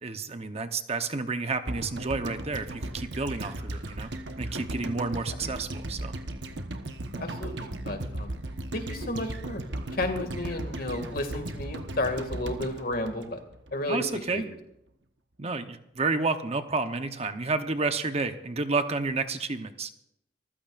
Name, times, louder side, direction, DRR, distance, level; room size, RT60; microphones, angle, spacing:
voice 1, 0.0-4.1 4.4-6.1 13.9-14.4 15.4-19.9, right 3 dB, 35° right, 8 dB, 0.9 m, -30 dB
sound 1, 1.7-13.9 14.1-14.2, right 1 dB, 70° right, 1.2 m, -36 dB
voice 2, 7.2-8.3 8.7-9.6 9.9-13.4 13.7-14.4, left 2 dB, 55° left, 6 dB, 2.2 m, -32 dB
26.0 x 15.0 x 2.6 m, 0.78 s
head